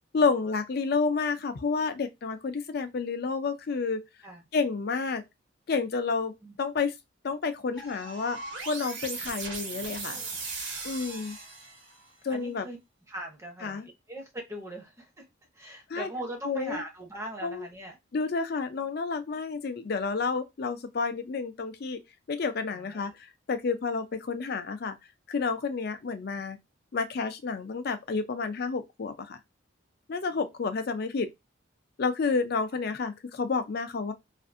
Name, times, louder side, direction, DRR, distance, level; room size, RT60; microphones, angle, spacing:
voice 1, 0.1-4.0 4.5-5.2 5.7-6.3 6.6-6.9 7.2-8.4 8.7-10.2 10.8-11.4 12.2-12.7 13.6-13.9 15.9-16.1 16.5-16.8 17.4-17.7 18.1-22.0 22.3-24.9 25.3-26.6 26.9-29.4 30.1-31.3 32.0-34.1, left 4 dB, 50° left, 0.4 m, -30 dB
sound 1, 7.7-12.0, right 4 dB, 65° right, 1.0 m, -38 dB
voice 2, 12.3-12.8 13.1-15.3 15.5-18.0 22.7-23.2 30.3-30.5, right 1 dB, 15° right, 0.6 m, -40 dB
2.5 x 2.5 x 2.4 m
head